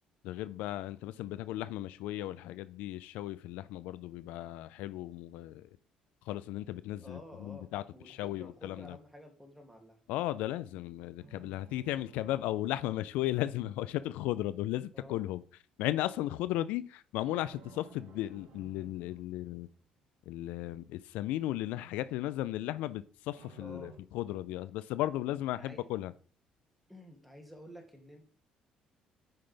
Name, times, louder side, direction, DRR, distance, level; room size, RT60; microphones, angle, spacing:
voice 1, 0.2-5.7 6.2-9.0 10.1-15.4 15.8-19.7 20.3-26.1, left 14 dB, 85° left, 0.4 m, -35 dB
voice 2, 7.0-10.0 14.9-15.2 23.6-23.9 25.5-25.9 26.9-28.2, equal, ahead, 2.5 m, -51 dB
sound 1, 7.4-8.6 11.2-13.9 17.2-19.9 23.3-24.0, right 4 dB, 75° right, 1.9 m, -57 dB
8.8 x 5.8 x 3.4 m
supercardioid pair, 80°, 2 cm